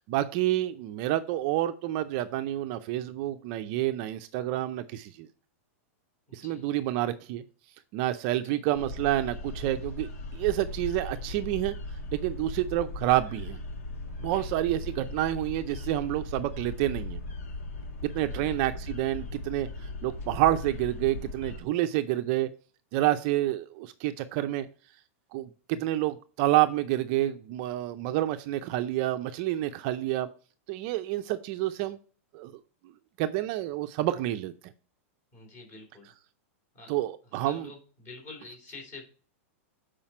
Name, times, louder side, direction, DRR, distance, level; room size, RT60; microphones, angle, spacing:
voice 1, 0.1-5.3 6.3-7.4 7.9-11.8 12.1-13.6 14.2-17.2 18.0-22.5 22.9-24.7 25.3-30.3 30.7-32.0 32.3-32.5 33.2-34.7 36.9-37.7, right 14 dB, 40° right, 9 dB, 0.5 m, -28 dB
voice 2, 6.3-6.7 8.5-8.6 14.2-14.5 14.8-14.9 18.1-18.5 35.3-36.1 36.7-36.9 37.4-39.0, left 3 dB, 30° left, 2 dB, 3.3 m, -47 dB
sound 1, 8.7-21.6, left 2 dB, 90° left, 1.3 m, -38 dB
7.3 x 4.9 x 4.2 m, 0.39 s
supercardioid pair, 160°, 8 cm